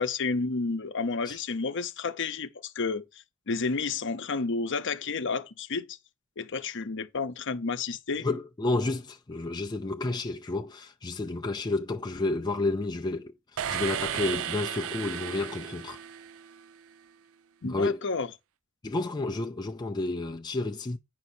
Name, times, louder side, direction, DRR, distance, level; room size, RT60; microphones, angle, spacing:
voice 1, 0.0-6.0 6.4-8.3 17.6-18.3, left 4 dB, 55° left, 0.8 m, -31 dB
voice 2, 8.2-13.3 13.7-16.0 17.6-18.0 18.8-21.0, left 2 dB, 20° left, 0.4 m, -30 dB
sound 1, 13.6-16.7, right 9 dB, 65° right, 0.4 m, -34 dB
9.2 x 5.6 x 4.3 m
head